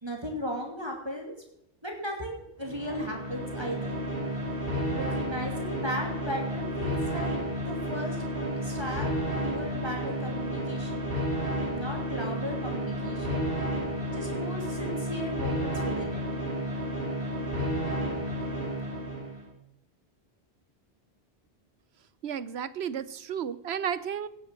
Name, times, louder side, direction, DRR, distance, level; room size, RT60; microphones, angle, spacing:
voice 1, 0.0-1.3 1.8-4.0 4.9-7.4 7.7-11.1 11.7-13.5 14.1-16.2, equal, 25° right, 0 dB, 2.8 m, -36 dB
sound 1, 2.6-19.5, equal, 60° right, 3.9 m, -31 dB
voice 2, 22.2-24.3, right 8 dB, 75° right, 16 dB, 1.0 m, -33 dB
17.0 x 7.7 x 7.6 m, 0.76 s
omnidirectional pair, 1.1 m